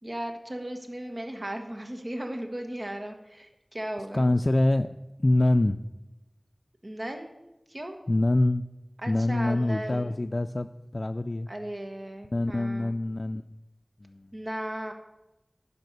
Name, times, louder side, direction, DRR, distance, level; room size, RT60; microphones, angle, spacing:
voice 1, 0.0-4.3 6.8-7.3 7.7-8.0 9.0-10.2 11.5-12.9 14.3-14.9, right 1 dB, 55° right, 4 dB, 1.3 m, -36 dB
voice 2, 4.1-4.9 5.2-5.8 8.1-8.7 9.1-11.5 12.3-13.5 14.0-14.3, left 1 dB, 60° left, 8 dB, 0.3 m, -25 dB
10.5 x 5.4 x 6.6 m, 1.0 s
wide cardioid pair, 45°, 0 cm